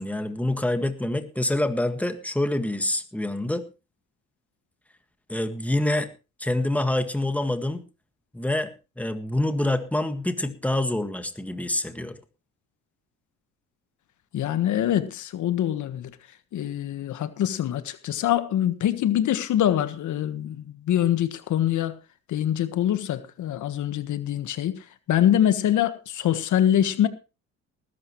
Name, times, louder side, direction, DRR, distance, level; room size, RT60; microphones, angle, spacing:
voice 1, 0.0-3.6 5.3-6.1 6.4-7.8 8.3-12.2, left 1 dB, 5° left, 1.8 m, -26 dB
voice 2, 14.3-16.1 16.5-22.0 22.3-24.8 25.1-27.1, left 11 dB, 75° left, 1.5 m, -24 dB
19.5 x 11.0 x 3.2 m
cardioid pair, 90°, 30 cm